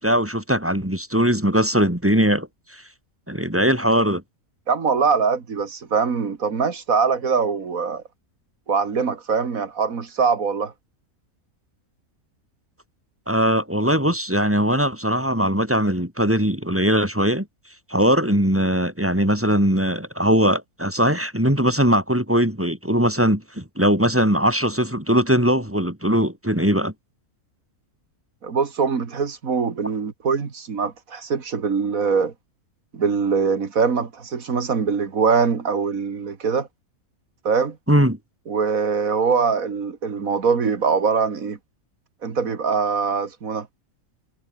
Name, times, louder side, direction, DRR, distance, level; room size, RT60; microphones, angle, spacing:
voice 1, 0.0-2.8 3.3-4.2 13.3-17.5 17.9-26.9 37.9-38.2, equal, 10° right, 2.9 m, -20 dB
voice 2, 4.7-8.0 8.7-10.7 28.4-32.3 32.9-36.7 37.4-37.8 38.5-41.6 42.2-43.7, right 5 dB, 70° right, 2.4 m, -22 dB
omnidirectional pair, 1.5 m